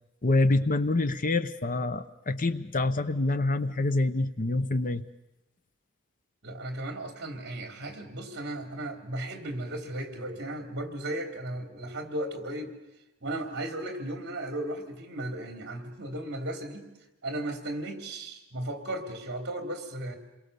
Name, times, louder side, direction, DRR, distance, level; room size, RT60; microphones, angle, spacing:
voice 1, 0.2-5.0, left 2 dB, 40° left, 12 dB, 0.9 m, -26 dB
voice 2, 6.4-12.7 13.2-16.9 17.2-20.2, right 1 dB, 55° right, 6 dB, 3.4 m, -35 dB
28.5 x 22.5 x 7.0 m, 0.98 s
head